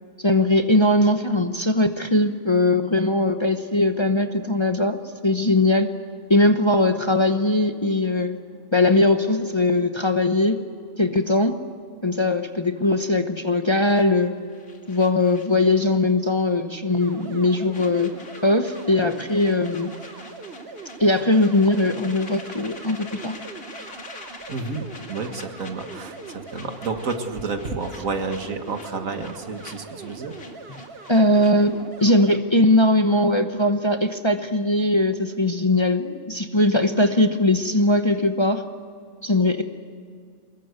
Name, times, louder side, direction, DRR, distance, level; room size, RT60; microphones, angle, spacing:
voice 1, 0.2-5.9 6.3-8.4 8.7-10.6 11.0-11.6 12.0-14.3 14.9-18.1 18.4-19.9 21.0-23.4 31.1-38.6 39.2-39.6, left 2 dB, 25° left, 6 dB, 0.9 m, -20 dB
sound 1, 13.8-16.1 16.4-16.6 16.9-31.8, left 3 dB, 75° left, 2.6 m, -45 dB
sound 2, 17.0-32.4, right 4 dB, 50° right, 1.6 m, -41 dB
voice 2, 24.5-30.3, right 4 dB, 75° right, 6 dB, 2.1 m, -30 dB
23.5 x 21.0 x 8.1 m, 2.2 s
omnidirectional pair, 1.4 m